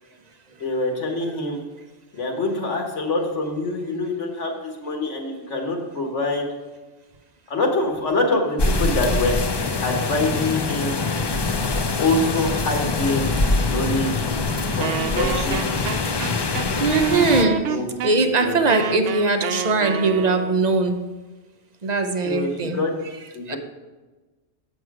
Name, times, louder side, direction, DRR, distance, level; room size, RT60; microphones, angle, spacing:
voice 1, 0.6-1.6 2.1-6.5 7.5-9.3 9.8-11.0 12.0-14.2 14.7-15.7 17.6-18.9 22.2-23.0 23.3-23.6, left 2 dB, 80° left, 2 dB, 1.7 m, -25 dB
sound 1, 8.6-17.4, left 3 dB, 45° left, 0.3 m, -24 dB
Wind instrument woodwind instrument, 14.8-20.6, right 8 dB, 90° right, 0.9 m, -28 dB
voice 2, 16.8-21.1 21.8-22.8 23.5-23.6, right 3 dB, 45° right, 7 dB, 0.7 m, -21 dB
7.9 x 6.3 x 4.8 m, 1.2 s
omnidirectional pair, 1.2 m